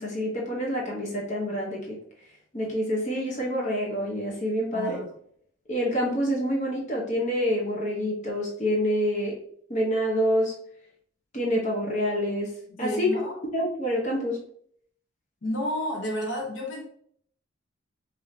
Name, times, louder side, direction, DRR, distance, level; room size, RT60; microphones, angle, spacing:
voice 1, 0.0-2.0 2.5-5.0 5.7-9.4 9.7-10.6 11.3-13.1 13.5-14.4, equal, 35° left, -2 dB, 0.9 m, -27 dB
voice 2, 4.7-5.1 12.7-13.4 15.4-16.8, left 1 dB, 65° left, 0 dB, 0.8 m, -31 dB
4.9 x 2.7 x 2.7 m, 0.64 s
head